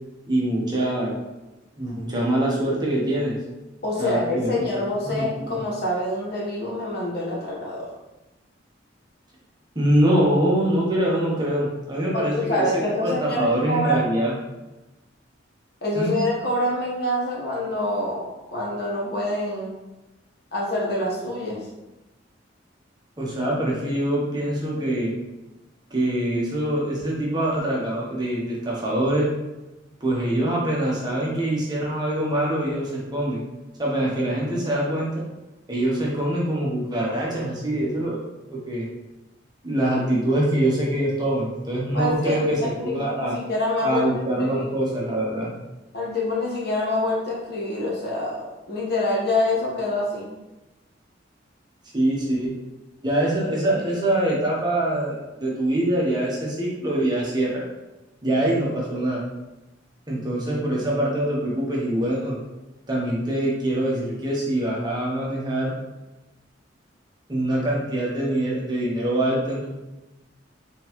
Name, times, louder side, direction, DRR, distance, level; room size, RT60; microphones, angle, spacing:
voice 1, 0.3-1.1 1.8-3.3 4.0-4.7 5.0-5.5 9.7-14.3 15.9-16.2 23.2-25.1 25.9-29.3 30.0-33.4 33.8-35.2 35.7-38.2 38.5-38.9 39.6-43.3 43.8-45.5 51.9-52.5 53.0-57.6 58.2-59.2 60.1-62.4 62.9-65.8 67.3-69.7, right 1 dB, 20° right, -4 dB, 0.9 m, -24 dB
voice 2, 3.8-7.9 12.1-14.0 15.8-19.7 20.5-21.6 41.9-44.7 45.9-50.3, left 1 dB, 55° left, -4 dB, 1.2 m, -26 dB
3.7 x 3.5 x 3.0 m, 1.0 s
head